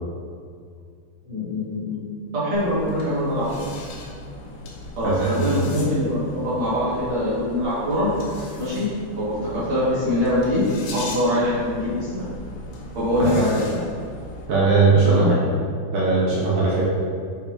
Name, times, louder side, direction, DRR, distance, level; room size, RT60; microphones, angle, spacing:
voice 1, 1.2-3.7 5.0-8.1 8.6-8.9 9.1-12.3 12.9-13.8 15.0-15.3, left 1 dB, 50° right, -11 dB, 2.2 m, -23 dB
sound 1, 2.5-14.5, left 2 dB, 80° left, 3.2 m, -38 dB
voice 2, 5.0-5.4 13.2-13.4 14.5-15.3 15.9-16.8, right 4 dB, 70° right, -7 dB, 2.5 m, -19 dB
8.0 x 5.7 x 2.7 m, 2.1 s
omnidirectional pair, 5.0 m